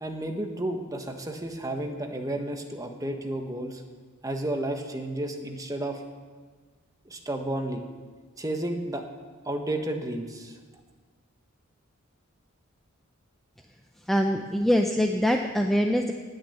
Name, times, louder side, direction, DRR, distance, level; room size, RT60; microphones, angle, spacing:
voice 1, 0.0-3.8 4.2-6.0 7.0-7.8 8.4-9.0 9.4-10.6, right 1 dB, 15° right, 4 dB, 1.3 m, -32 dB
voice 2, 14.1-16.1, equal, ahead, 3 dB, 0.6 m, -23 dB
19.0 x 6.6 x 8.3 m, 1.5 s
head